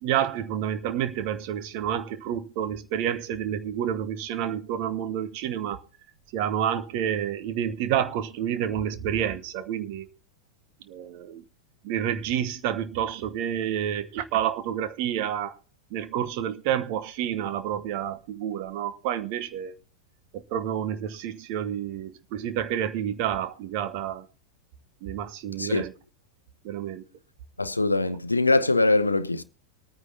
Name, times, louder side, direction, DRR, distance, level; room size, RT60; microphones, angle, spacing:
voice 1, 0.0-5.8 6.3-10.1 10.9-11.4 11.8-15.6 15.9-19.7 20.3-24.3 25.0-25.9 26.6-27.0, right 10 dB, 45° right, 1.1 m, -29 dB
voice 2, 27.6-29.4, left 2 dB, 80° left, 0.6 m, -22 dB
24.0 x 9.5 x 2.8 m
figure-of-eight pair, 90°, 0 cm